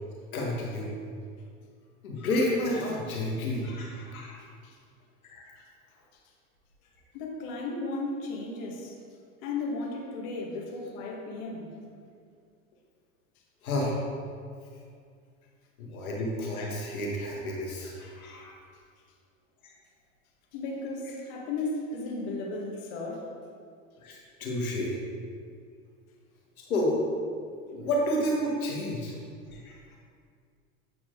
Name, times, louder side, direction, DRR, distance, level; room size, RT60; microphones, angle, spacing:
voice 1, 0.3-0.9 2.0-4.4 5.3-5.6 13.6-14.0 15.8-18.5 24.0-25.0 26.6-27.0 27.7-29.1 29.5-29.7, left 1 dB, 90° left, -2 dB, 1.6 m, -30 dB
voice 2, 7.1-8.9 9.4-11.7 20.5-23.2, left 3 dB, 55° left, -1 dB, 1.6 m, -35 dB
8.1 x 4.6 x 3.7 m, 2.2 s
hypercardioid pair, 95°, 41 cm